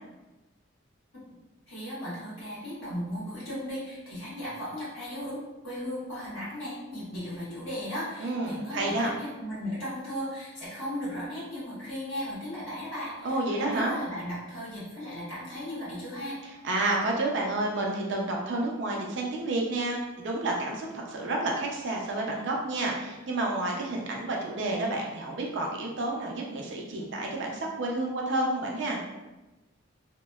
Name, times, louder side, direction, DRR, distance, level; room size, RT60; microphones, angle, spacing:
voice 1, 1.7-16.4, equal, 85° left, -9 dB, 1.3 m, -36 dB
voice 2, 8.2-9.1 13.2-13.9 16.6-29.0, right 2 dB, 60° right, -1 dB, 0.5 m, -30 dB
2.8 x 2.1 x 2.2 m, 1.1 s
head